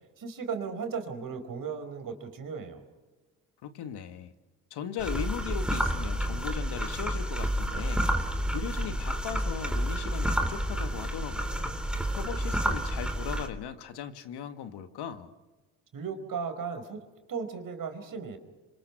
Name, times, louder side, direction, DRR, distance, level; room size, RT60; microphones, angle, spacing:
voice 1, 0.2-2.8 15.9-17.0 17.3-18.4, right 5 dB, 50° right, 8 dB, 4.6 m, -36 dB
voice 2, 3.6-4.3 4.7-8.1 8.5-11.7 12.2-15.3, left 8 dB, 60° left, 9 dB, 1.9 m, -38 dB
sound 1, 5.0-13.5, equal, ahead, 3.1 m, -30 dB
27.5 x 25.0 x 5.9 m, 1.2 s
hypercardioid pair, 65°, 44 cm